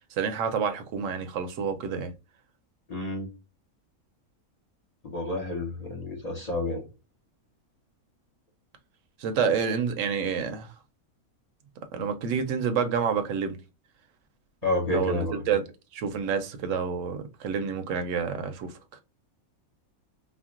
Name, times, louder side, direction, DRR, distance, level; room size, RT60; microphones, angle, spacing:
voice 1, 0.2-2.1 9.2-10.7 11.9-13.6 14.9-15.6 15.9-18.7, right 6 dB, 65° right, 0.9 m, -28 dB
voice 2, 2.9-3.3 5.0-6.8 14.6-15.4, left 2 dB, 50° left, 0.5 m, -29 dB
4.3 x 2.0 x 2.4 m
omnidirectional pair, 1.5 m